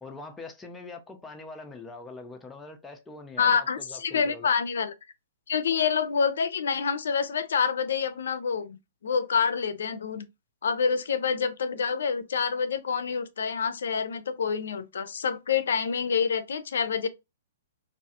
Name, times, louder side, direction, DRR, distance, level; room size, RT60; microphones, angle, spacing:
voice 1, 0.0-4.5, left 3 dB, 10° left, 0.4 m, -43 dB
voice 2, 3.4-4.9 5.5-10.3 10.6-17.1, left 6 dB, 80° left, 0.4 m, -27 dB
2.4 x 2.3 x 2.7 m
hypercardioid pair, 145°, 0 cm